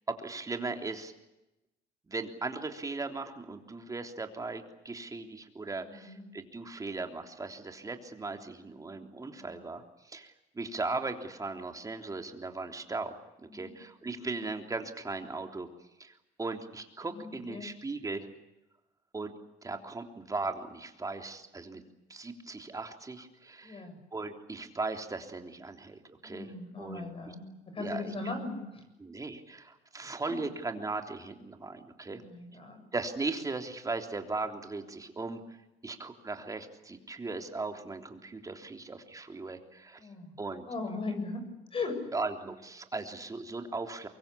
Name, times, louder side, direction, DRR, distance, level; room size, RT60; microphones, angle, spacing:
voice 1, 0.1-1.1 2.1-9.8 10.1-13.2 13.5-15.7 16.0-16.1 16.4-18.3 19.1-19.3 19.6-21.8 22.1-23.8 24.1-27.1 27.8-28.1 29.0-32.2 32.9-35.4 35.8-40.0 40.4-40.6 42.1-44.1, right 3 dB, 20° right, 5 dB, 3.5 m, -38 dB
voice 2, 5.8-6.3 9.4-9.5 13.4-13.7 17.1-17.7 23.6-24.0 26.2-27.4 27.7-28.8 30.0-30.4 32.0-32.8 40.0-40.3 40.7-41.4 41.7-42.0, left 3 dB, 35° left, 7 dB, 7.3 m, -38 dB
24.0 x 23.0 x 8.6 m, 0.95 s
cardioid pair, 110°, 17 cm